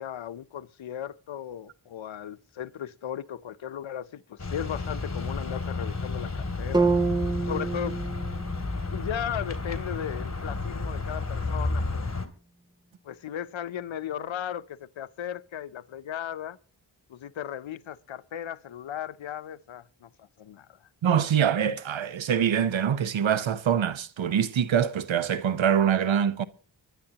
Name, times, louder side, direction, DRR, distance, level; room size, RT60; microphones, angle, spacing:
voice 1, 0.0-6.9 7.4-8.0 8.9-12.1 13.0-16.6 17.1-20.8, left 10 dB, 85° left, 0.7 m, -36 dB
sound 1, 4.4-12.3, left 3 dB, 35° left, 2.5 m, -32 dB
sound 2, 6.7-10.8, right 3 dB, 10° right, 0.6 m, -29 dB
voice 2, 21.0-26.4, right 8 dB, 85° right, 0.9 m, -24 dB
24.0 x 11.0 x 2.9 m
cardioid pair, 45°, 45 cm